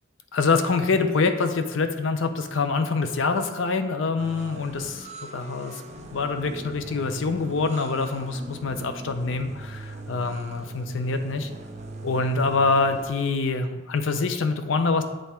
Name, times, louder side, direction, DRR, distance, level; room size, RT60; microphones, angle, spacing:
voice 1, 0.3-11.5 12.0-15.0, left 4 dB, 80° left, 8 dB, 0.5 m, -25 dB
sound 1, 4.2-13.1, right 2 dB, 35° right, 0.6 m, -41 dB
7.7 x 3.5 x 4.3 m, 1.2 s
head